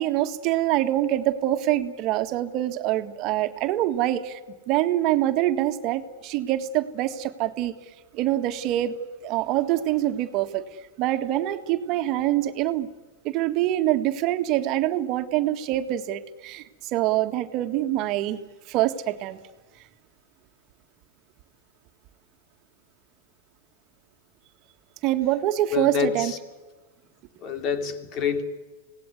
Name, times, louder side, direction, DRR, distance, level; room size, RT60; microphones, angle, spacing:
voice 1, 0.0-4.4 4.7-7.7 8.1-10.7 11.0-12.9 13.2-18.4 18.7-19.4 25.0-26.3, right 13 dB, 45° right, 7 dB, 1.7 m, -25 dB
voice 2, 25.7-26.4 27.4-28.4, left 6 dB, 45° left, 8 dB, 3.2 m, -27 dB
26.0 x 18.5 x 9.6 m, 1.2 s
hypercardioid pair, 110°, 0 cm